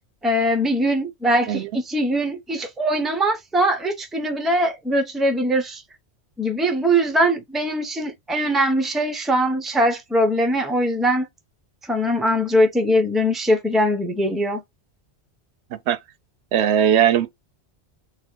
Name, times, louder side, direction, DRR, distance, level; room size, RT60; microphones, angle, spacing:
voice 1, 0.2-5.8 6.4-11.3 11.9-14.6, equal, ahead, 0.6 m, -21 dB
voice 2, 16.5-17.3, right 9 dB, 80° right, 0.9 m, -18 dB
4.1 x 2.3 x 4.4 m
omnidirectional pair, 1.1 m